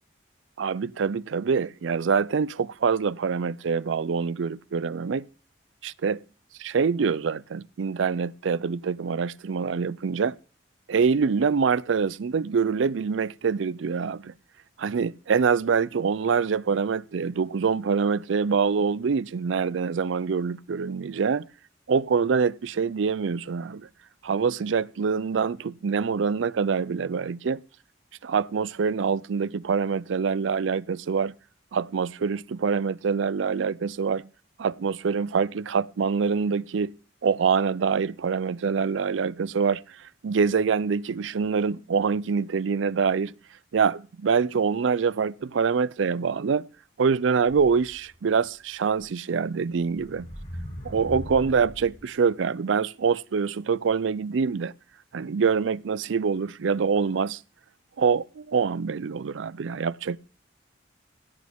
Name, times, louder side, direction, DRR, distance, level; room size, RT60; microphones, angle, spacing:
voice 1, 0.6-5.2 5.8-6.2 6.6-10.4 10.9-14.3 14.8-21.5 21.9-23.9 24.2-27.6 28.2-31.3 31.7-34.3 34.6-36.9 37.2-43.3 43.7-46.7 47.0-50.3 50.8-54.7 55.1-57.4 58.0-60.2, right 5 dB, 80° right, 0.4 m, -25 dB
sound 1, 47.9-48.4 49.0-49.1 49.7-52.1, equal, 50° left, 6.0 m, -39 dB
16.5 x 8.4 x 3.6 m
head